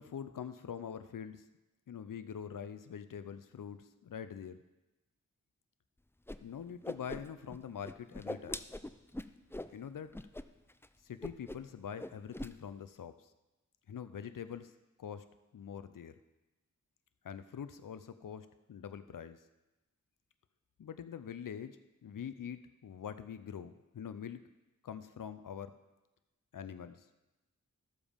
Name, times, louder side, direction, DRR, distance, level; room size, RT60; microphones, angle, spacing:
voice 1, 0.0-1.4 1.9-4.6 6.4-8.6 9.7-10.1 11.0-13.3 13.9-14.7 15.0-15.3 15.5-16.1 17.2-19.4 20.8-24.4 24.8-25.7 26.5-27.1, left 8 dB, 85° left, 11 dB, 0.5 m, -44 dB
Whoosh swoosh swish, 6.3-6.4 6.7-7.6 7.8-9.7 10.1-10.4 10.7-10.9 11.2-11.7 12.0-12.5, left 1 dB, 10° left, 0.4 m, -42 dB
13.0 x 7.1 x 5.1 m, 1.0 s
wide cardioid pair, 55°, 31 cm